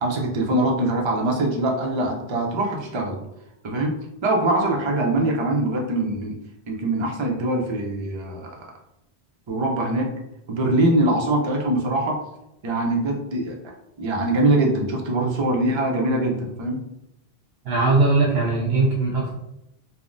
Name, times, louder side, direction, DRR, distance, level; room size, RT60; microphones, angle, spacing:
voice 1, 0.0-3.2 3.6-4.0 4.2-6.4 6.7-8.6 9.5-10.1 10.5-12.2 12.6-13.6 14.0-16.8, right 1 dB, 45° right, 0 dB, 0.4 m, -23 dB
voice 2, 17.6-19.3, right 3 dB, 75° right, 0 dB, 0.8 m, -20 dB
3.4 x 2.1 x 2.5 m, 0.85 s
omnidirectional pair, 1.1 m